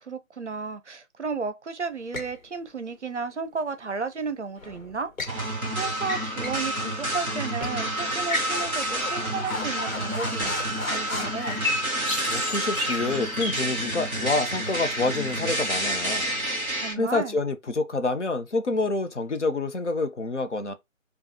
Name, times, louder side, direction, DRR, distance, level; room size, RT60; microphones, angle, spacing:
voice 1, 0.0-5.1 5.8-11.7 16.8-17.4, right 5 dB, 60° right, 0.6 m, -33 dB
sound 1, 2.1-2.4 4.6-5.4 6.0-6.7 7.0-7.1 7.6-7.8 8.2-11.5, left 2 dB, 75° left, 1.3 m, -34 dB
sound 2, 5.3-16.9, right 1 dB, 5° right, 0.8 m, -29 dB
sound 3, 10.1-16.8, left 2 dB, 20° left, 1.2 m, -36 dB
voice 2, 12.3-16.3 17.0-20.7, left 3 dB, 60° left, 0.8 m, -27 dB
5.1 x 2.3 x 2.8 m
figure-of-eight pair, 155°, 41 cm